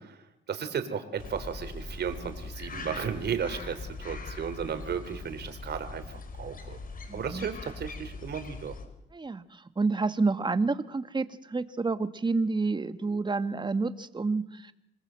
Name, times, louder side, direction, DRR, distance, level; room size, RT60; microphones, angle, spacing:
voice 1, 0.0-6.8 7.1-8.7, right 7 dB, 55° right, 9 dB, 3.7 m, -35 dB
sound 1, 1.2-8.8, left 3 dB, 45° left, 4.8 m, -41 dB
voice 2, 7.1-7.5 9.1-14.7, right 3 dB, 25° right, 11 dB, 1.6 m, -29 dB
27.0 x 20.0 x 7.7 m, 0.78 s
cardioid pair, 90°, 20 cm